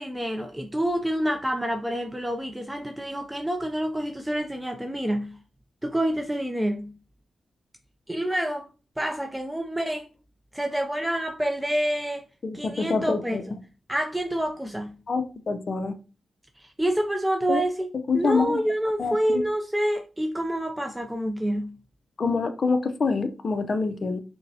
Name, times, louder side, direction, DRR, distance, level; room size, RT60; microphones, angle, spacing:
voice 1, 0.0-5.4 5.8-6.9 8.1-8.7 9.0-10.1 10.5-12.3 12.5-13.5 13.9-15.0 16.6-17.9 18.1-21.8, right 1 dB, 10° right, 0.4 m, -27 dB
voice 2, 12.4-13.4 15.1-15.9 17.5-17.6 18.1-18.6 19.0-19.4 22.2-24.2, left 4 dB, 55° left, 0.5 m, -26 dB
5.2 x 2.1 x 2.7 m
cardioid pair, 60°, 0 cm